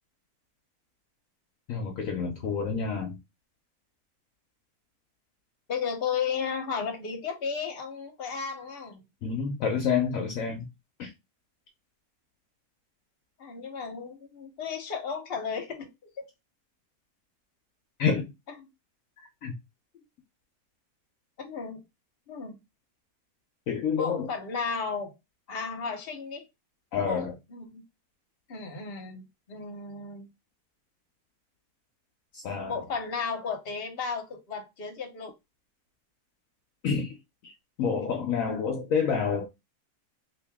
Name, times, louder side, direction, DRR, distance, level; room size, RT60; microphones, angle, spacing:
voice 1, 1.7-3.2 9.2-10.7 11.0-11.1 18.0-18.3 19.4-19.5 23.7-24.3 26.9-27.3 32.3-32.8 36.8-37.1 37.4-37.5 37.8-39.5, left 6 dB, 65° left, 1.0 m, -28 dB
voice 2, 5.7-9.0 13.4-15.9 16.2-16.3 18.5-18.7 19.9-20.0 21.4-21.8 22.3-22.6 23.9-25.1 25.5-26.4 27.0-27.8 28.5-29.2 29.5-30.3 32.7-35.3, left 5 dB, 45° left, 1.1 m, -34 dB
2.9 x 2.9 x 3.4 m
omnidirectional pair, 1.6 m